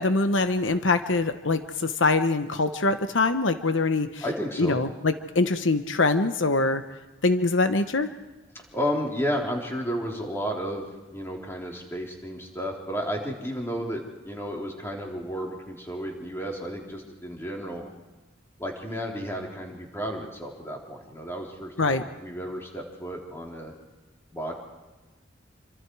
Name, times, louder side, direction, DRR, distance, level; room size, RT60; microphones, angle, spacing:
voice 1, 0.0-4.2 4.6-6.8 7.2-8.1 21.8-22.0, left 3 dB, 80° left, 9 dB, 1.0 m, -23 dB
voice 2, 4.2-4.8 8.7-17.8 18.6-23.7 24.3-24.5, equal, 15° left, -1 dB, 3.9 m, -32 dB
27.5 x 25.5 x 4.8 m, 1.2 s
head